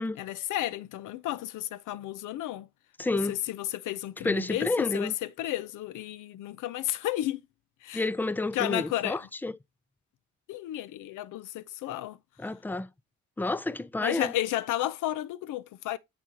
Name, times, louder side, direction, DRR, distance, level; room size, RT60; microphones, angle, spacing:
voice 1, 0.2-2.7 3.1-7.4 7.8-8.0 8.5-9.2 10.5-12.2 14.0-16.0, left 14 dB, 85° left, 0.6 m, -32 dB
voice 2, 3.0-3.4 4.2-5.1 7.9-9.6 12.4-12.9 13.4-14.3, left 2 dB, 5° left, 0.4 m, -30 dB
7.1 x 6.0 x 2.8 m
cardioid pair, 90°, 30 cm